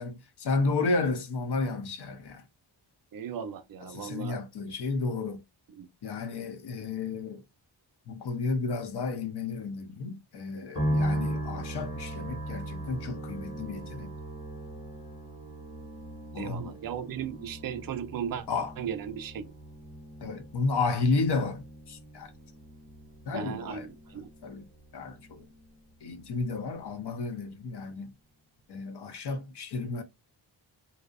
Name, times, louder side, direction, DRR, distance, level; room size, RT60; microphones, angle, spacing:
voice 1, 0.0-2.4 3.9-5.4 6.0-7.4 8.1-14.1 16.3-16.8 18.5-18.7 20.2-22.3 23.2-23.9 24.4-24.7 24.9-25.4 26.0-28.1 28.7-30.0, left 3 dB, 60° left, 0.6 m, -32 dB
voice 2, 3.1-4.4 5.7-5.9 16.3-18.5 18.8-19.5 23.3-24.3, right 8 dB, 50° right, 0.4 m, -36 dB
sound 1, 10.7-26.0 26.3-27.1, right 1 dB, 20° left, 1.1 m, -38 dB
2.6 x 2.0 x 2.3 m
wide cardioid pair, 135°, 46 cm